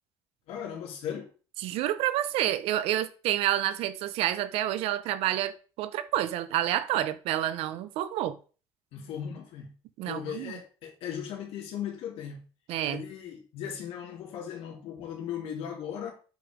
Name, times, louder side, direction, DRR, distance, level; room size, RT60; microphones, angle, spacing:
voice 1, 0.5-1.3 8.9-9.7 10.0-12.4 12.9-16.1, left 8 dB, 70° left, 2.8 m, -37 dB
voice 2, 1.6-8.4 10.0-10.5 12.7-13.0, right 12 dB, 80° right, 0.8 m, -29 dB
7.8 x 5.0 x 5.1 m
cardioid pair, 150°, 10 cm